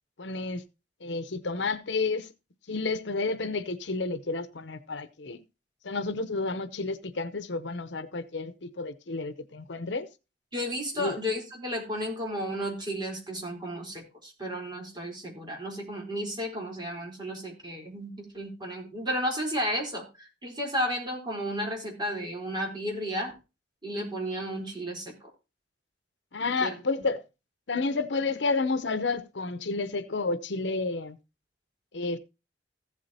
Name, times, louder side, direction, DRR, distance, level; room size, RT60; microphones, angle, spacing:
voice 1, 0.2-0.6 1.0-2.3 2.7-5.4 5.8-10.1 11.0-11.2 26.3-27.2 27.7-31.2 31.9-32.2, left 3 dB, 75° left, 0.8 m, -30 dB
voice 2, 10.5-23.3 23.8-25.3 26.6-26.7, equal, 25° right, 4.0 m, -33 dB
15.0 x 8.4 x 2.8 m
head